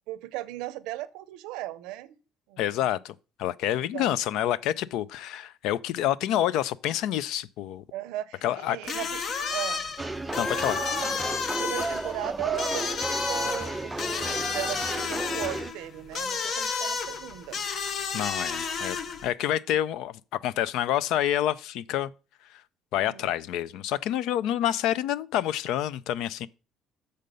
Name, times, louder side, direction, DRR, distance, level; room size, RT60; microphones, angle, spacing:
voice 1, 0.1-2.2 2.5-2.8 3.7-4.2 7.9-9.2 9.5-9.8 11.5-17.6 22.9-23.3, right 15 dB, 85° right, 0.6 m, -37 dB
voice 2, 2.6-7.8 8.4-9.0 10.4-10.8 18.1-19.0 19.2-22.1 22.5-22.6 22.9-26.5, left 12 dB, 80° left, 0.4 m, -28 dB
sound 1, 8.8-19.3, left 5 dB, 55° left, 0.9 m, -31 dB
sound 2, 10.0-15.7, right 2 dB, 15° right, 0.3 m, -33 dB
6.6 x 5.1 x 6.7 m
cardioid pair, 95°, 0 cm